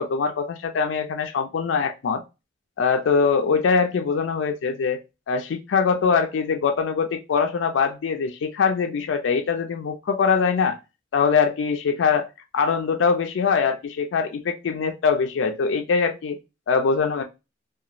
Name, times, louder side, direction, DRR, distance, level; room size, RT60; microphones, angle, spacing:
voice 1, 0.0-2.2 2.8-5.0 5.3-10.8 11.1-12.3 12.5-16.4 16.7-17.2, left 5 dB, 80° left, 5 dB, 0.4 m, -22 dB
2.8 x 2.3 x 2.5 m, 0.26 s
head